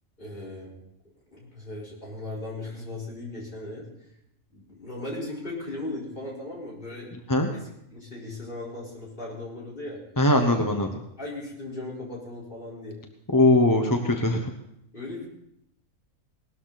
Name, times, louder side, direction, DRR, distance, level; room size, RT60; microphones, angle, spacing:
voice 1, 0.2-0.7 1.3-3.9 4.5-7.1 7.5-10.0 10.4-10.6 11.2-13.0 14.9-15.3, left 2 dB, 40° left, -3 dB, 4.6 m, -37 dB
voice 2, 10.2-10.9 13.3-14.5, left 1 dB, 15° left, 4 dB, 0.9 m, -20 dB
19.0 x 13.0 x 4.1 m, 0.78 s
omnidirectional pair, 1.4 m